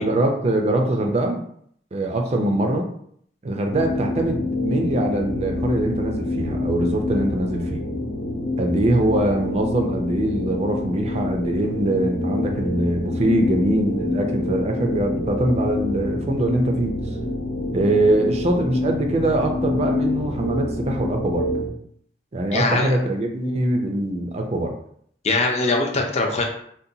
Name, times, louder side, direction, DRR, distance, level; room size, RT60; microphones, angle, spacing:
voice 1, 0.0-1.4 1.9-2.9 3.4-7.8 8.6-17.0 17.7-21.5 22.3-24.8, right 1 dB, 40° right, 3 dB, 0.4 m, -23 dB
sound 1, 3.7-21.7, left 2 dB, 85° left, 0.8 m, -27 dB
voice 2, 22.5-22.9 25.2-26.4, left 2 dB, 40° left, 1 dB, 0.6 m, -21 dB
3.8 x 2.2 x 2.7 m, 0.65 s
head